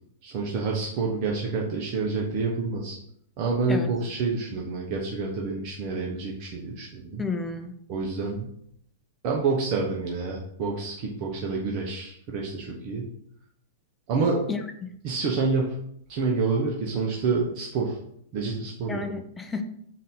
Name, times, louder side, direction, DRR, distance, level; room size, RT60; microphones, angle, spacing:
voice 1, 0.2-3.0 3.4-7.2 7.9-8.5 9.2-13.1 14.1-14.4 15.0-15.8 16.1-18.0 18.3-19.0, right 4 dB, 45° right, -2 dB, 0.7 m, -28 dB
voice 2, 7.2-7.7 14.5-14.9 18.9-19.6, left 4 dB, 10° left, 6 dB, 0.5 m, -31 dB
3.8 x 2.7 x 3.6 m, 0.71 s
hypercardioid pair, 105°, 0 cm